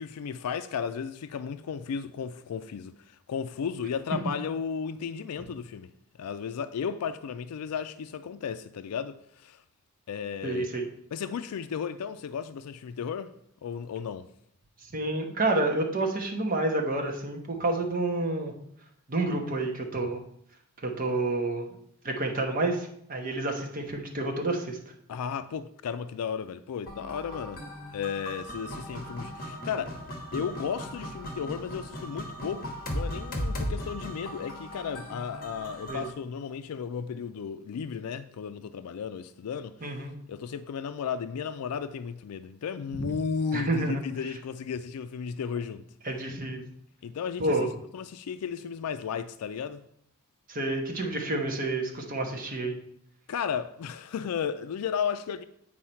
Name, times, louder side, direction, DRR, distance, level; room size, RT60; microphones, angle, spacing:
voice 1, 0.0-5.9 6.2-9.6 10.1-10.7 11.1-13.3 13.6-14.3 25.1-27.6 27.9-30.1 30.3-40.0 40.3-45.8 47.0-47.6 47.9-49.8 53.3-55.4, left 7 dB, 80° left, 0.4 m, -34 dB
voice 2, 10.4-10.8 14.9-18.5 19.1-20.2 21.0-21.7 22.0-24.8 35.9-36.0 39.8-40.1 42.9-43.1 43.5-44.0 46.0-46.6 47.4-47.7 50.5-52.8, right 2 dB, 40° right, 1.1 m, -29 dB
sound 1, 26.9-36.1, equal, 40° left, 1.3 m, -37 dB
8.5 x 4.7 x 4.4 m
head